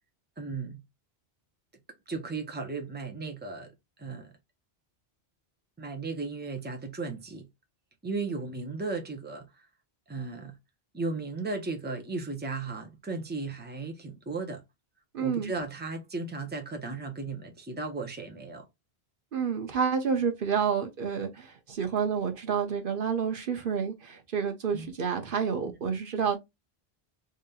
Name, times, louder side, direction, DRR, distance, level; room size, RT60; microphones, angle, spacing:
voice 1, 0.4-0.8 2.1-3.7 4.0-4.3 5.8-7.4 8.0-9.7 10.1-10.5 10.9-14.6 15.2-18.6 24.7-24.9, right 3 dB, 10° right, 0.7 m, -35 dB
voice 2, 15.1-15.5 19.3-26.4, right 6 dB, 60° right, 0.8 m, -29 dB
5.1 x 2.7 x 2.3 m
omnidirectional pair, 1.1 m